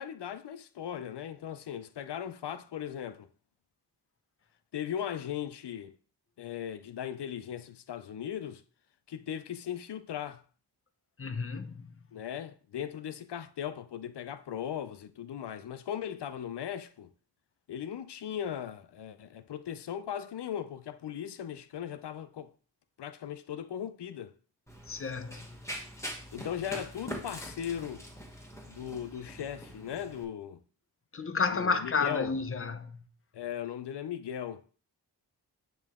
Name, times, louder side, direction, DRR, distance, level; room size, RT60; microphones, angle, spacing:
voice 1, 0.0-3.3 4.7-5.9 6.4-8.6 9.1-10.4 12.1-17.1 17.7-22.5 23.0-24.3 26.3-28.0 28.7-30.6 31.5-32.3 33.3-34.6, left 9 dB, 75° left, 0.6 m, -38 dB
voice 2, 11.2-11.9 24.9-25.5 31.1-33.0, left 4 dB, 35° left, 0.6 m, -31 dB
Run, 24.7-30.2, equal, 5° left, 1.2 m, -43 dB
8.7 x 3.0 x 3.6 m
wide cardioid pair, 80°, 41 cm